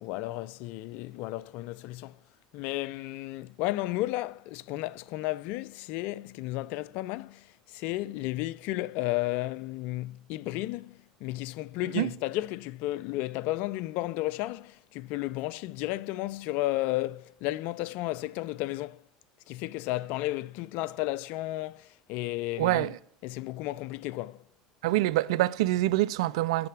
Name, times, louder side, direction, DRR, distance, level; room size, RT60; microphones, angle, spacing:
voice 1, 0.0-2.1 2.5-19.0 19.5-22.9 23.2-24.4, left 17 dB, 65° left, 0.4 m, -33 dB
voice 2, 22.6-23.0 24.8-26.7, right 16 dB, 75° right, 0.4 m, -25 dB
8.7 x 6.6 x 6.0 m
hypercardioid pair, 75°, 3 cm